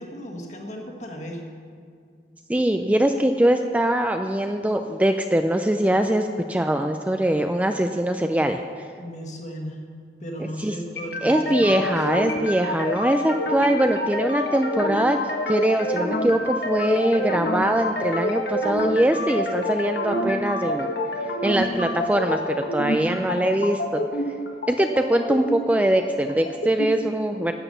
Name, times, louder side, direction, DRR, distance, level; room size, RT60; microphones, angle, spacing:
voice 1, 0.0-1.4 9.0-9.8 10.2-12.0 22.9-23.6, equal, 40° left, 1 dB, 1.7 m, -36 dB
voice 2, 2.5-8.9 10.6-10.7 11.2-15.2 15.5-20.9 21.4-22.4 22.7-24.0 24.7-27.5, right 1 dB, 10° right, 6 dB, 0.3 m, -22 dB
sound 1, 11.0-26.9, left 1 dB, 65° left, 1.4 m, -28 dB
12.0 x 8.0 x 6.6 m, 2.1 s
head